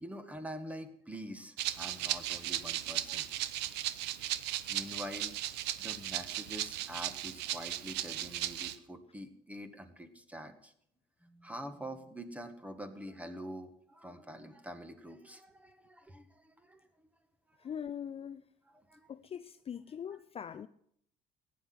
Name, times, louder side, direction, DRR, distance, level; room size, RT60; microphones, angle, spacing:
voice 1, 0.0-3.3 4.7-5.3 5.8-10.7 11.2-16.9 18.7-19.1 20.1-20.2, equal, 10° right, 1.7 m, -46 dB
Rattle (instrument), 1.6-8.8, right 13 dB, 90° right, 0.8 m, -36 dB
voice 2, 17.6-18.5 19.1-20.7, left 8 dB, 35° left, 0.5 m, -42 dB
15.5 x 9.8 x 7.8 m
cardioid pair, 110°, 17 cm